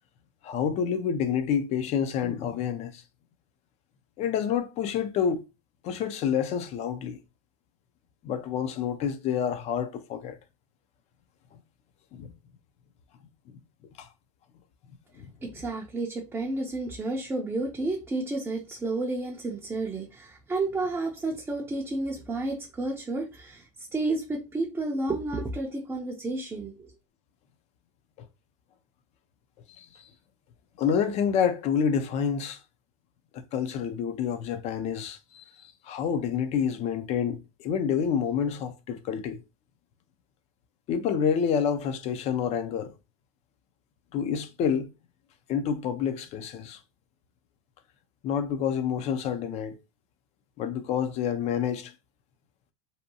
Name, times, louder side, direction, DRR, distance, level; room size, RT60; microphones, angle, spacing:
voice 1, 0.4-3.0 4.2-5.4 5.8-7.2 8.2-10.4 12.1-12.3 14.0-14.1 15.2-15.3 29.8-30.1 30.8-32.6 33.3-39.4 40.9-42.9 44.1-44.9 45.5-46.8 48.2-49.8 50.6-51.9, left 7 dB, 40° left, 0.5 m, -28 dB
voice 2, 15.4-26.9, right 2 dB, 10° right, 0.5 m, -31 dB
2.7 x 2.2 x 2.7 m
supercardioid pair, 130°, 18 cm